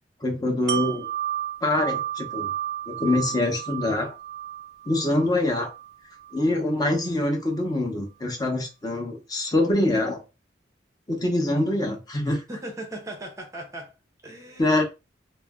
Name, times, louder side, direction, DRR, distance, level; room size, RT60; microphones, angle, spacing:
voice 1, 0.2-1.1 1.6-2.5 2.9-4.2 4.9-5.7 6.3-10.2 11.1-12.4 14.6-14.8, left 1 dB, 20° left, 0.8 m, -24 dB
Wind chime, 0.7-6.5 6.9-7.0, right 11 dB, 55° right, 0.3 m, -33 dB
voice 2, 12.5-13.9 14.2-14.8, right 1 dB, 15° right, 0.6 m, -38 dB
2.5 x 2.0 x 3.5 m
head